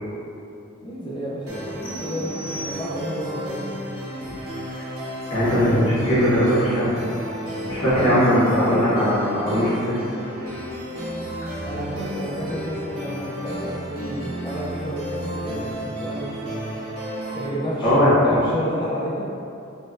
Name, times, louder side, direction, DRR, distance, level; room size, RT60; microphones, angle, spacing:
voice 1, 0.8-3.6 7.8-8.3 8.5-8.9 11.7-16.7 17.3-19.2, equal, 20° left, -9 dB, 0.5 m, -30 dB
sound 1, 1.5-17.5, equal, 85° right, 0.9 m, -33 dB
sound 2, 1.8-3.3, right 2 dB, 65° left, 1.1 m, -38 dB
voice 2, 5.3-7.1 7.7-9.9 11.4-11.5 17.8-18.4, equal, 90° left, -11 dB, 1.4 m, -20 dB
4.1 x 2.2 x 2.5 m, 2.7 s
head